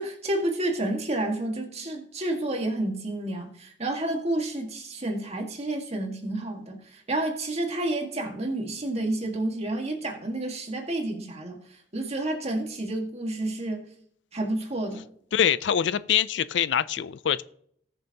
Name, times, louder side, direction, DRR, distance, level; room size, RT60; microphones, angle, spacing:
voice 1, 0.0-11.6 11.9-13.8 14.3-15.1, right 1 dB, 35° right, 1.8 m, -30 dB
voice 2, 15.3-17.4, left 9 dB, 70° left, 0.4 m, -24 dB
19.5 x 6.9 x 2.9 m
head